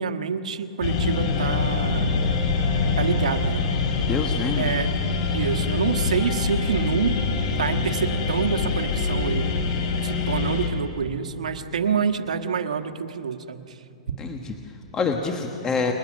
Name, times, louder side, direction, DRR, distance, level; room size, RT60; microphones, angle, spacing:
voice 1, 0.0-2.2 3.0-3.7 4.6-4.9 5.3-7.2 7.6-9.5 10.0-13.8, right 6 dB, 90° right, 7 dB, 1.5 m, -27 dB
sound 1, 0.8-10.7, left 4 dB, 50° left, 4.3 m, -24 dB
voice 2, 4.1-4.7 14.2-15.9, left 4 dB, 20° left, 3 dB, 1.4 m, -27 dB
29.5 x 21.0 x 6.4 m, 2.6 s
hypercardioid pair, 145°, 4 cm